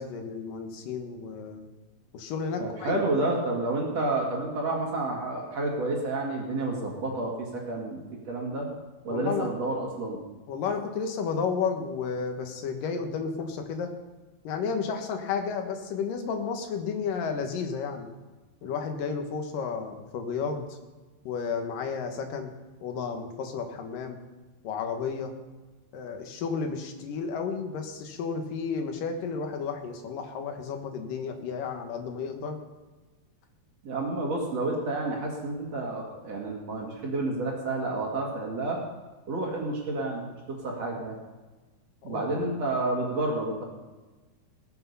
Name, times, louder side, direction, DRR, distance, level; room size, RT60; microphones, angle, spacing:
voice 1, 0.0-1.7 2.1-3.0 9.1-9.5 10.5-13.9 14.4-18.1 18.6-20.6 21.2-22.5 22.8-24.2 24.6-25.3 25.9-32.6 42.0-42.2, left 5 dB, 70° left, 5 dB, 2.9 m, -32 dB
voice 2, 2.6-8.7 9.0-10.2 33.8-38.8 39.3-41.2 42.0-43.6, right 2 dB, 50° right, -1 dB, 3.0 m, -30 dB
19.5 x 8.3 x 5.6 m, 1.2 s
omnidirectional pair, 4.3 m